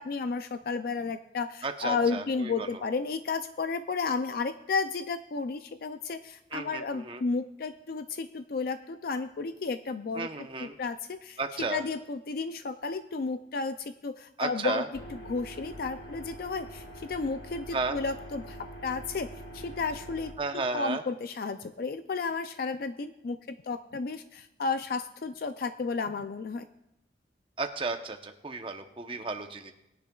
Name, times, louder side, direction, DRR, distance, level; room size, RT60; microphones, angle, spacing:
voice 1, 0.0-14.9 15.1-19.3 19.5-26.7, left 4 dB, 55° left, 10 dB, 0.4 m, -33 dB
voice 2, 1.6-2.8 6.5-7.2 10.1-10.8 11.4-11.8 14.4-14.9 17.7-18.0 20.4-21.0 27.6-29.7, right 3 dB, 30° right, 6 dB, 0.8 m, -33 dB
sound 1, 14.9-20.3, right 1 dB, 70° left, 1.7 m, -44 dB
20.5 x 10.5 x 2.3 m, 0.87 s
head